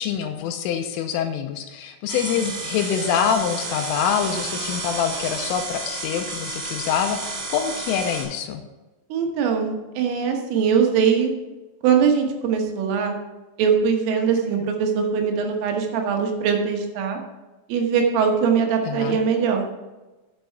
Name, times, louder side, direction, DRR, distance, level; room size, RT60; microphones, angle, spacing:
voice 1, 0.0-8.6 14.4-14.6 18.9-19.2, left 8 dB, 85° left, 6 dB, 3.2 m, -25 dB
sound 1, 2.1-8.2, right 2 dB, 45° right, 3.8 m, -31 dB
voice 2, 9.1-11.3 11.8-13.1 13.6-17.2 17.7-19.6, right 6 dB, 80° right, 2 dB, 3.8 m, -21 dB
10.5 x 7.4 x 4.6 m, 1.1 s
omnidirectional pair, 5.9 m